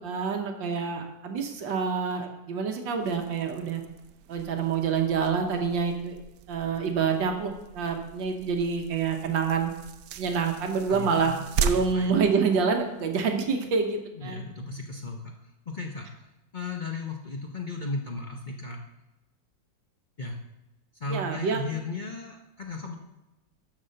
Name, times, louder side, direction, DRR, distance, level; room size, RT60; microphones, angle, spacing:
voice 1, 0.0-3.8 4.3-6.1 6.5-9.7 10.2-14.4 21.1-21.6, right 5 dB, 85° right, 4 dB, 1.8 m, -27 dB
sound 1, 3.0-13.1, right 6 dB, 70° right, 1.0 m, -37 dB
voice 2, 10.9-11.4 11.7-12.1 14.2-15.3 15.7-16.1 16.5-18.8 20.2-20.3 21.0-22.9, left 3 dB, 55° left, 1 dB, 0.5 m, -35 dB
12.5 x 4.3 x 6.5 m, 0.98 s
omnidirectional pair, 2.0 m